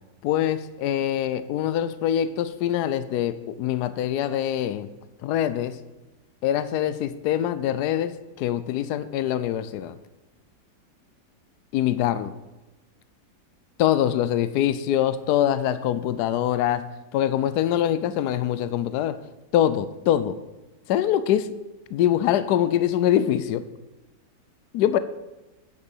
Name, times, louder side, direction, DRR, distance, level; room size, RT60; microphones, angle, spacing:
voice 1, 0.2-4.9 5.2-5.8 6.4-9.9 11.7-12.3 13.8-16.9 17.1-19.2 19.5-20.4 20.9-21.5 21.9-23.6 24.7-25.0, left 11 dB, 80° left, 14 dB, 1.1 m, -24 dB
9.8 x 6.8 x 7.1 m, 1.1 s
omnidirectional pair, 1.7 m